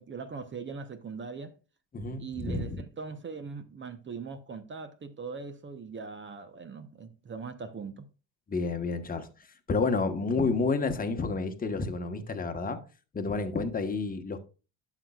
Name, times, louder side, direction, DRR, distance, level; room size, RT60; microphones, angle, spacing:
voice 1, 0.0-1.5 2.2-8.1, right 5 dB, 25° right, 0.9 m, -40 dB
voice 2, 1.9-2.8 8.5-9.3 9.7-12.8 13.1-14.4, left 4 dB, 20° left, 1.2 m, -30 dB
12.0 x 6.4 x 2.4 m
supercardioid pair, 105°, 43 cm